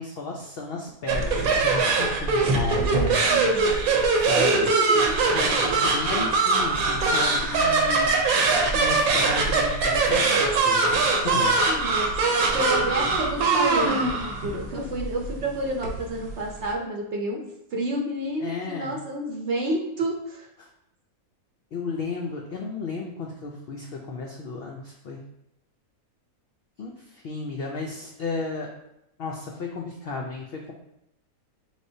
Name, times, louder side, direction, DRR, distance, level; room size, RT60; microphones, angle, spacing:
voice 1, 0.0-3.7 4.1-4.7 5.3-8.2 8.7-11.6 18.4-18.9 20.6-20.7 21.7-25.2 26.8-28.7 29.2-30.7, left 4 dB, 75° left, 0 dB, 0.5 m, -34 dB
sound 1, 1.1-16.7, right 3 dB, 75° right, 1.1 m, -22 dB
voice 2, 2.9-3.7 4.4-5.1 5.4-5.8 11.7-12.1 12.5-17.4 17.7-20.5, right 1 dB, 60° right, 0 dB, 0.8 m, -29 dB
4.4 x 3.3 x 2.7 m, 0.84 s
omnidirectional pair, 1.6 m